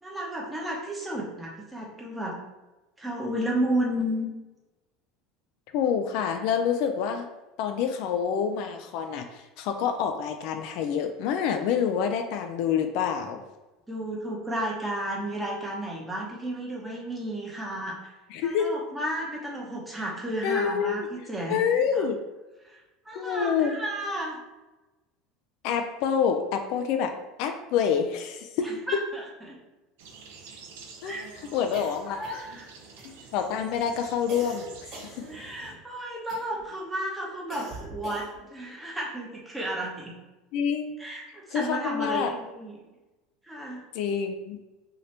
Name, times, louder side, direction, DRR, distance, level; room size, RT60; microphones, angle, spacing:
voice 1, 0.0-2.4 3.0-4.3 13.9-18.0 18.4-21.6 21.9-22.0 22.6-22.7 23.1-24.4 28.6-29.6 31.0-31.3 32.1-32.7 35.3-40.1 41.0-42.8 43.4-43.8, right 1 dB, 10° right, -3 dB, 0.7 m, -32 dB
voice 2, 5.7-7.3 7.6-13.4 18.3-18.7 20.4-20.9 21.5-22.2 23.2-23.8 25.6-27.1 27.4-28.6 31.0-31.2 31.5-32.2 33.3-35.1 40.5-41.0 41.5-42.3 43.9-44.6, left 7 dB, 60° left, 6 dB, 0.3 m, -27 dB
sound 1, 30.0-35.7, right 4 dB, 85° right, 0.5 m, -48 dB
sound 2, 31.7-32.6 33.0-33.5 34.3-35.8 36.3-36.7 37.5-38.5, right 2 dB, 40° right, 1.3 m, -44 dB
2.8 x 2.6 x 3.2 m, 1.1 s
supercardioid pair, 130°, 0 cm